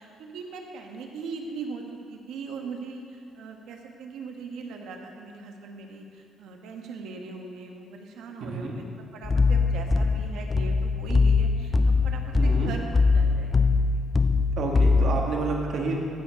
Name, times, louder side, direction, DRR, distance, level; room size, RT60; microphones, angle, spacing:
voice 1, 0.0-13.5 13.9-14.0, right 4 dB, 85° right, 3 dB, 1.2 m, -40 dB
voice 2, 8.4-8.8 12.4-12.7 14.6-16.0, right 3 dB, 60° right, 1 dB, 1.5 m, -29 dB
sound 1, 9.2-15.3, left 4 dB, 20° left, 0.4 m, -22 dB
15.5 x 5.4 x 5.1 m, 2.4 s
cardioid pair, 140°, 0 cm